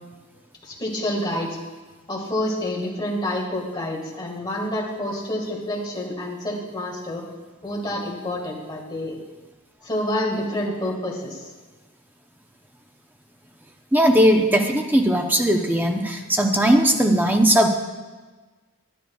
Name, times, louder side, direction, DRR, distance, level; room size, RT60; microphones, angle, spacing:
voice 1, 0.6-1.6 2.1-7.2 7.6-9.2 9.8-11.4, left 1 dB, 20° left, -3 dB, 1.7 m, -28 dB
voice 2, 13.9-17.7, right 1 dB, 10° right, 3 dB, 0.6 m, -18 dB
11.0 x 10.5 x 2.3 m, 1.3 s
head